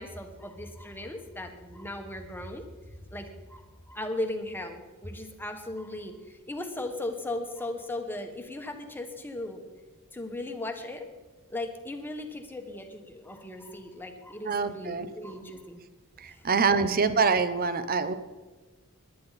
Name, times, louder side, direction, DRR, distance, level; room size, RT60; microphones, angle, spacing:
voice 1, 0.0-2.6 3.1-9.7 10.1-11.1 11.5-15.8 16.3-16.4 16.7-16.9, left 1 dB, 10° left, 5 dB, 1.3 m, -37 dB
voice 2, 14.5-15.1 16.2-18.1, right 5 dB, 40° right, 12 dB, 0.7 m, -25 dB
19.0 x 11.0 x 4.2 m, 1.2 s
head